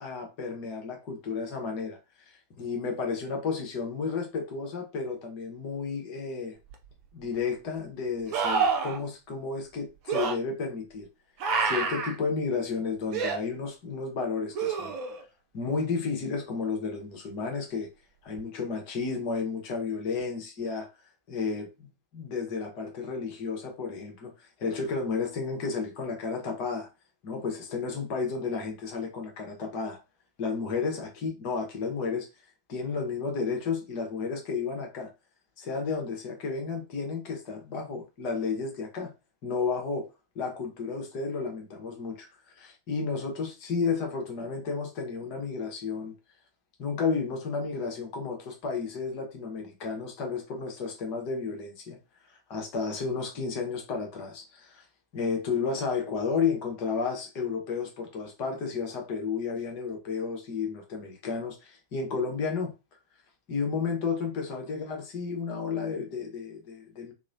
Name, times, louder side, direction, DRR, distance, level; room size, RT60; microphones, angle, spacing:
voice 1, 0.0-6.6 7.1-11.1 11.6-14.9 15.5-17.9 18.2-20.9 21.3-21.9 22.1-26.9 27.2-30.0 30.4-32.3 32.7-35.1 35.6-39.1 39.4-40.1 40.3-42.3 42.6-46.1 46.8-52.0 52.3-54.9 55.1-62.7 63.5-67.1, left 5 dB, 45° left, 0.9 m, -32 dB
sound 1, 6.7-6.8 8.3-9.0 10.1-10.3 11.4-12.1 13.1-13.4 14.5-15.2 18.4-18.5, right 5 dB, 40° right, 0.6 m, -27 dB
3.0 x 2.1 x 2.6 m
figure-of-eight pair, 90°, 0 cm